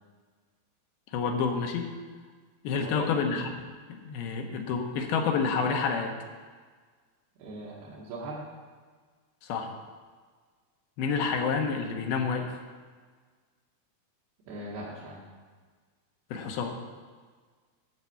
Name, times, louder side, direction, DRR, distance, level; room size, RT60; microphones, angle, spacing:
voice 1, 1.1-1.9 2.6-3.7 4.0-6.1 9.4-9.7 11.0-12.6 16.3-16.7, left 5 dB, 85° left, 3 dB, 3.0 m, -29 dB
voice 2, 2.7-3.1 7.4-8.4 14.5-15.2, right 2 dB, 85° right, -6 dB, 3.5 m, -39 dB
13.0 x 4.5 x 8.5 m, 1.5 s
omnidirectional pair, 4.4 m